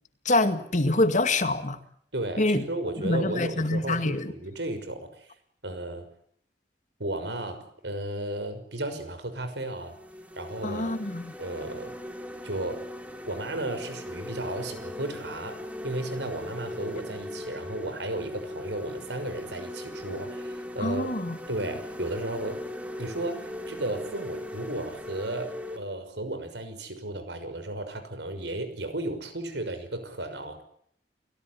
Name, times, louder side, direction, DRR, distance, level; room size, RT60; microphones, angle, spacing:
voice 1, 0.3-1.8 2.4-2.6 3.0-4.3 10.6-11.3 20.8-21.4, left 2 dB, 45° left, 9 dB, 2.2 m, -25 dB
voice 2, 2.1-5.3 5.6-6.1 7.0-10.0 10.3-11.0 11.4-11.9 12.4-12.8 13.3-21.1 21.5-22.6 23.0-30.6, right 1 dB, 80° right, 10 dB, 6.1 m, -34 dB
sound 1, 8.9-9.0 9.6-25.8, left 1 dB, 10° right, 3.3 m, -39 dB
29.0 x 18.0 x 9.8 m, 0.65 s
head